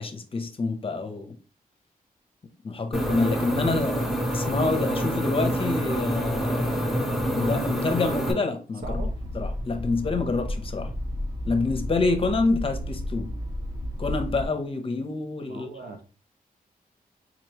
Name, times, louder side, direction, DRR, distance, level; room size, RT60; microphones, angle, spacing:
voice 1, 0.0-1.4 2.6-9.0 9.3-10.9 11.5-13.3 14.0-15.9, left 3 dB, 35° left, 0.7 m, -27 dB
sound 1, 2.9-8.3, right 1 dB, ahead, 0.8 m, -26 dB
sound 2, 8.8-14.5, left 1 dB, 25° right, 1.1 m, -32 dB
voice 2, 8.8-9.1 15.5-16.0, right 3 dB, 75° right, 0.9 m, -39 dB
4.0 x 3.0 x 2.8 m
wide cardioid pair, 115°, 15 cm